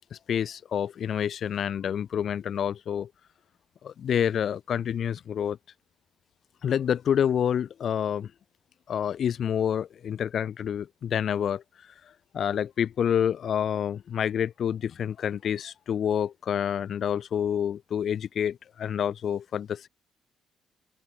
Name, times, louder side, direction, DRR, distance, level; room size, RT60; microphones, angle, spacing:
voice 1, 0.1-3.1 3.8-5.6 6.6-8.3 8.9-11.6 12.3-19.9, left 8 dB, 60° left, 2.2 m, -28 dB
cardioid pair, 90°, 0 cm